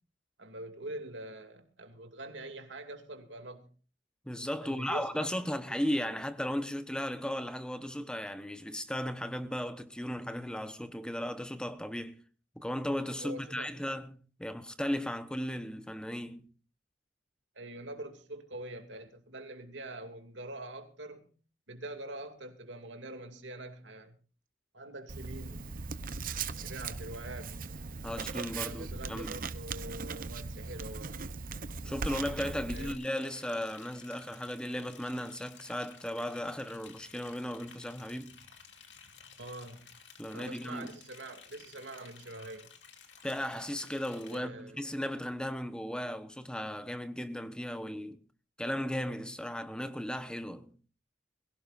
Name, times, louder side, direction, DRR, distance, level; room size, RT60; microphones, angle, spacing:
voice 1, 0.4-3.7 4.6-5.6 13.2-13.7 17.5-21.3 21.7-24.2 24.7-25.7 26.6-27.5 28.5-31.2 32.7-33.0 39.4-39.9 40.3-42.7 44.3-44.8, right 2 dB, 80° right, 2.5 m, -44 dB
voice 2, 4.2-12.2 12.6-16.5 28.0-29.4 31.8-38.4 40.2-40.9 43.2-48.2 48.6-50.7, equal, 5° left, 1.0 m, -36 dB
Writing, 25.1-32.9, right 4 dB, 50° right, 0.8 m, -39 dB
Liquid, 32.7-44.4, left 6 dB, 70° left, 2.5 m, -55 dB
22.5 x 16.5 x 2.6 m
head